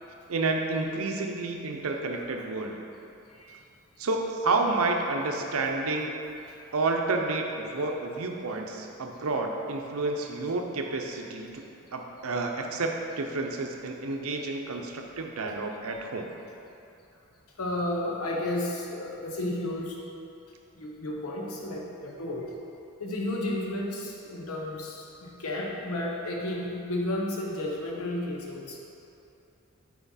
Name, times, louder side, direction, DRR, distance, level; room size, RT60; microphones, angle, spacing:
voice 1, 0.3-2.8 4.0-6.1 6.7-11.6 11.9-16.3, right 3 dB, 75° right, 2 dB, 0.6 m, -30 dB
voice 2, 3.3-3.6 17.6-20.0 20.7-22.5 23.0-28.8, left 1 dB, 85° left, -2 dB, 0.9 m, -32 dB
5.9 x 4.3 x 4.1 m, 2.8 s
head